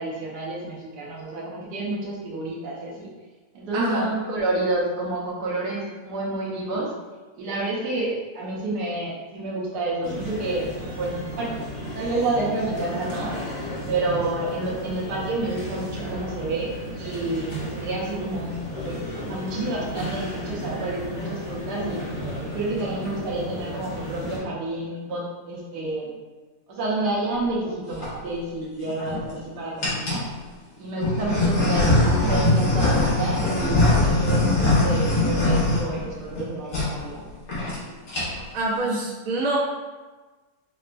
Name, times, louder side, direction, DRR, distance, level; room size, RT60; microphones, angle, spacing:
voice 1, 0.0-3.1 3.5-6.9 7.4-10.7 11.0-11.4 11.9-13.4 13.9-22.1 22.4-26.1 26.7-30.3 30.8-37.3, right 2 dB, 85° right, -4 dB, 1.3 m, -29 dB
voice 2, 3.7-4.1 38.5-39.6, right 2 dB, 60° right, -5 dB, 1.2 m, -26 dB
sound 1, 10.0-24.4, equal, 20° left, 0.9 m, -34 dB
sound 2, 27.7-28.1 28.8-29.3 29.8-30.3 31.0-36.4 36.7-36.9 37.2-37.3 37.5-37.8 38.0-38.5, left 2 dB, 85° left, 1.8 m, -21 dB
5.5 x 2.2 x 2.5 m, 1.3 s
omnidirectional pair, 1.7 m